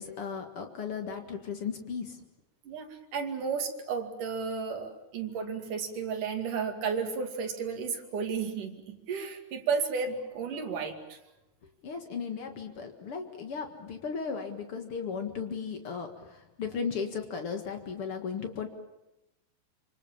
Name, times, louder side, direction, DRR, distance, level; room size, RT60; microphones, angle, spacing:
voice 1, 0.0-2.2 11.8-18.7, left 6 dB, 85° left, 5 dB, 1.2 m, -36 dB
voice 2, 2.6-11.2, right 5 dB, 50° right, 4 dB, 3.4 m, -33 dB
26.5 x 26.5 x 7.4 m, 0.95 s
omnidirectional pair, 5.7 m